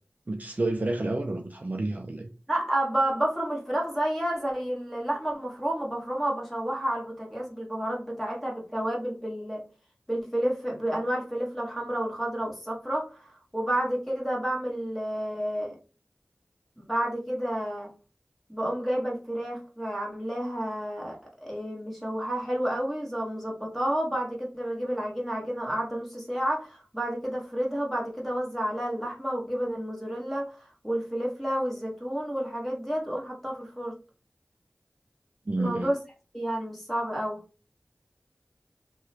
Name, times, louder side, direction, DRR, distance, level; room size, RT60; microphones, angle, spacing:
voice 1, 0.3-2.3 35.5-35.9, right 2 dB, 45° right, 0.4 m, -29 dB
voice 2, 2.5-9.6 10.1-13.2 13.5-15.8 16.8-17.9 18.5-21.2 21.4-30.5 30.8-34.0 35.6-36.0 36.3-37.4, right 1 dB, ahead, 1.3 m, -30 dB
2.9 x 2.2 x 4.0 m
wide cardioid pair, 45°, 4 cm